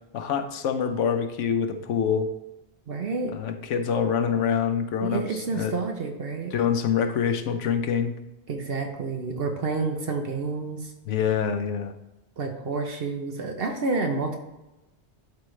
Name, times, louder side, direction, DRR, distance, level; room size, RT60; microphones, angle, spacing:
voice 1, 0.1-2.3 3.3-5.7 6.5-8.2 11.1-11.9, left 7 dB, 85° left, 8 dB, 1.0 m, -25 dB
voice 2, 2.9-3.4 5.0-6.5 8.5-10.9 12.4-14.4, right 4 dB, 60° right, 4 dB, 1.0 m, -29 dB
11.5 x 4.3 x 3.2 m, 0.97 s
omnidirectional pair, 1.2 m